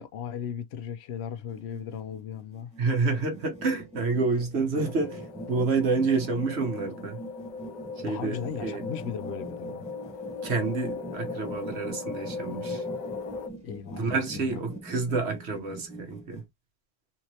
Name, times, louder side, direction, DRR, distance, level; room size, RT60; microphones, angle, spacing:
voice 1, 0.0-2.7 8.1-9.8 13.6-14.6, left 8 dB, 85° left, 0.8 m, -37 dB
sound 1, 1.4-16.4, right 1 dB, 5° right, 1.5 m, -43 dB
voice 2, 2.8-7.2 8.0-8.8 10.4-12.8 14.0-16.4, right 4 dB, 90° right, 1.3 m, -28 dB
sound 2, 4.8-13.5, left 4 dB, 55° left, 0.6 m, -38 dB
3.5 x 3.0 x 2.8 m
omnidirectional pair, 1.1 m